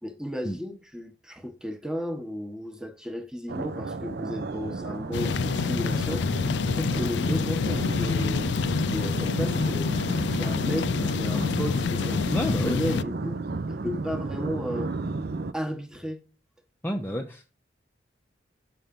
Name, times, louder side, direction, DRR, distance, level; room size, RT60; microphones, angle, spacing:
voice 1, 0.0-6.3 6.7-8.6 8.9-10.0 10.3-13.4 13.8-14.9 15.5-16.2, equal, 5° right, 1.0 m, -34 dB
sound 1, 3.5-15.5, right 3 dB, 60° right, 0.6 m, -33 dB
sound 2, 5.1-13.0, left 5 dB, 65° left, 0.4 m, -27 dB
voice 2, 12.3-12.8 16.8-17.2, equal, 10° left, 0.7 m, -28 dB
6.8 x 5.9 x 5.2 m
head